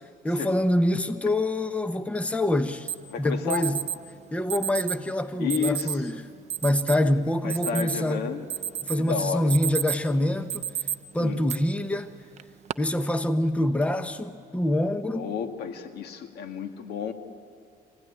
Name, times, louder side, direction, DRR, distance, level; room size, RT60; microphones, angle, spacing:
voice 1, 0.2-2.9 3.2-3.8 4.3-6.2 6.6-8.3 8.8-10.6 11.1-12.1 12.8-15.3, left 1 dB, 5° left, 9 dB, 0.9 m, -25 dB
Alarm, 2.9-3.0 3.5-4.0 4.5-5.0 5.5-6.0 6.5-7.0 7.3-8.1 8.5-9.0 9.3-10.1 10.5-10.9 11.5-11.6 12.4-12.7, right 10 dB, 40° right, 0.7 m, -30 dB
voice 2, 3.1-3.7 5.4-6.2 7.4-8.4 9.0-9.5 11.2-11.4 15.1-17.1, left 7 dB, 75° left, 6 dB, 1.8 m, -31 dB
25.5 x 17.0 x 9.9 m, 2.3 s
cardioid pair, 110°, 17 cm